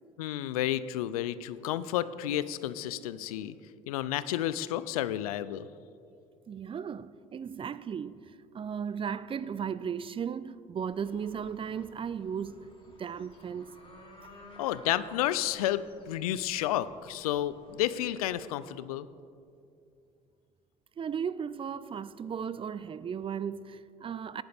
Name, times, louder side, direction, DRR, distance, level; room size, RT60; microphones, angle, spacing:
voice 1, 0.2-3.5 3.9-5.7 14.6-15.8 16.1-19.1, left 12 dB, 80° left, 0.4 m, -31 dB
voice 2, 6.5-8.2 8.5-12.7 13.0-13.7 21.0-24.4, right 7 dB, 30° right, 0.4 m, -36 dB
sound 1, 10.9-18.3, left 1 dB, 30° left, 3.0 m, -55 dB
17.5 x 9.2 x 3.5 m
hypercardioid pair, 60°, 18 cm